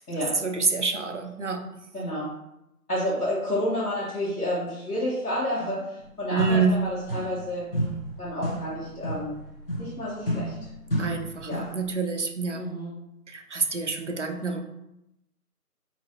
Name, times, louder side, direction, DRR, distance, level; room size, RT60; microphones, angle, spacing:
voice 1, 0.4-1.6 6.3-6.8 11.0-12.6 13.3-14.6, right 4 dB, 50° right, 4 dB, 0.5 m, -27 dB
voice 2, 1.9-2.3 2.9-7.7 8.2-9.4 9.8-10.7 11.4-11.7 12.5-12.9 14.4-14.6, left 1 dB, 75° left, -8 dB, 1.5 m, -30 dB
sound 1, 6.0-6.1 6.4-7.5 7.7-11.9, right 1 dB, 40° left, 0.8 m, -32 dB
5.0 x 3.0 x 2.8 m, 0.86 s
figure-of-eight pair, 165°, 46 cm